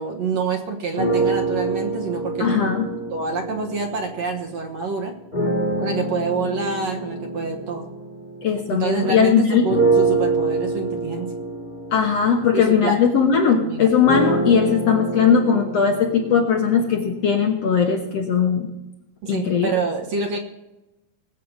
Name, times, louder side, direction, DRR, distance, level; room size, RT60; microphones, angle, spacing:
voice 1, 0.0-2.5 3.1-5.1 5.8-7.8 8.7-11.3 12.5-13.0 13.5-13.9 19.2-20.4, right 4 dB, 60° right, 4 dB, 2.1 m, -27 dB
sound 1, 1.0-4.5 5.3-9.1 9.7-17.6, right 3 dB, 20° left, 1.5 m, -26 dB
voice 2, 2.4-2.9 8.4-9.7 11.9-18.7 19.3-19.7, left 6 dB, 60° left, 2 dB, 1.8 m, -19 dB
20.5 x 7.7 x 5.3 m, 0.97 s
omnidirectional pair, 4.0 m